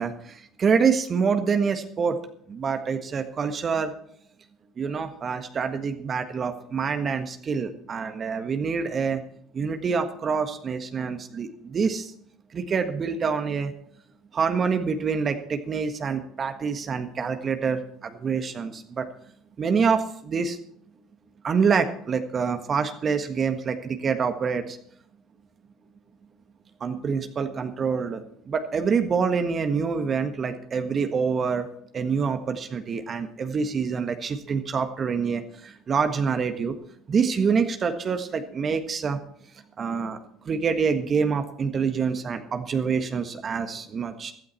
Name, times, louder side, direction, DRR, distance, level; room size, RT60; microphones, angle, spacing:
voice 1, 0.0-2.2 2.5-3.9 4.8-9.2 9.5-12.1 12.5-13.7 14.3-19.1 19.6-20.6 21.4-24.8 26.8-31.7 31.9-36.7 37.1-39.2 39.8-40.2 40.4-44.3, right 5 dB, 40° right, 7 dB, 1.5 m, -26 dB
15.5 x 12.5 x 4.5 m, 0.62 s
hypercardioid pair, 65°, 0 cm